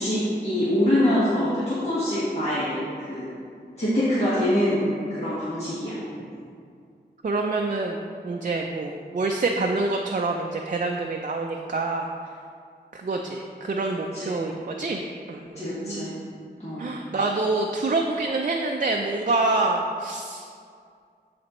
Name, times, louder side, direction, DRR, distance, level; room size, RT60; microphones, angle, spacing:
voice 1, 0.0-2.8 3.1-3.3 3.8-5.9 14.1-14.3 15.6-16.1 16.6-16.9, left 1 dB, 35° left, -10 dB, 1.6 m, -24 dB
voice 2, 7.2-8.0 8.2-12.1 12.9-15.0 15.3-16.3 16.8-20.5, right 3 dB, 50° right, 1 dB, 0.5 m, -26 dB
12.5 x 4.2 x 3.1 m, 2.2 s
wide cardioid pair, 55°, 18 cm